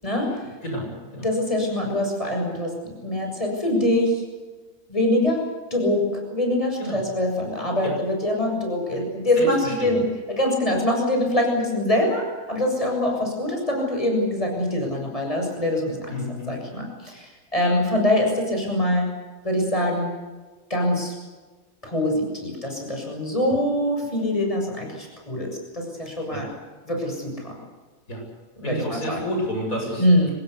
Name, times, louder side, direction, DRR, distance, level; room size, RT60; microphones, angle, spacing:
voice 1, 0.6-1.3 6.8-7.1 7.8-7.9 8.9-9.0 9.4-10.0 16.1-16.6 26.3-26.5 28.1-28.2 28.6-30.3, equal, 85° left, 1 dB, 8.4 m, -30 dB
voice 2, 1.2-2.7 3.0-4.1 4.9-5.4 5.7-10.0 10.3-16.2 16.5-19.1 19.4-20.1 20.7-21.1 21.8-26.5 26.9-27.5 28.6-29.2 30.0-30.3, left 1 dB, 25° left, 1 dB, 7.3 m, -24 dB
25.5 x 20.0 x 8.3 m, 1.3 s
omnidirectional pair, 1.4 m